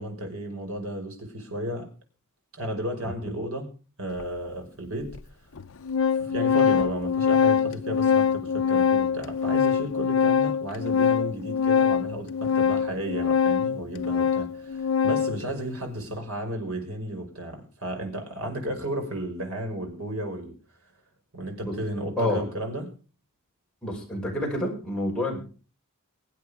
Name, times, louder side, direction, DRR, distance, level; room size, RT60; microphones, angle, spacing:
voice 1, 0.0-1.9 2.5-3.7 4.0-5.2 6.2-20.5 21.3-22.9, right 1 dB, 70° right, 5.7 m, -33 dB
Organ, 4.2-4.3 5.1-5.2 5.6-15.4, left 7 dB, 65° left, 0.7 m, -23 dB
voice 2, 23.8-25.4, left 1 dB, 5° left, 6.2 m, -28 dB
23.5 x 8.6 x 5.1 m
head